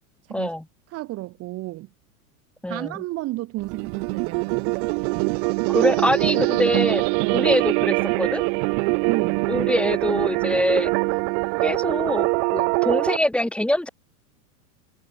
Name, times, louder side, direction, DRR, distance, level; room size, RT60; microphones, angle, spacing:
voice 1, 0.3-0.6 2.6-2.9 5.7-7.0 7.3-8.4 9.5-10.9 11.6-12.3 12.5-13.9, left 1 dB, ahead, 2.2 m, -24 dB
voice 2, 0.9-1.9 2.7-5.0 7.2-7.6 9.1-9.5, right 18 dB, 30° right, 1.3 m, -32 dB
sound 1, 3.6-13.2, right 40 dB or more, 50° right, 2.5 m, -23 dB
supercardioid pair, 135°, 45 cm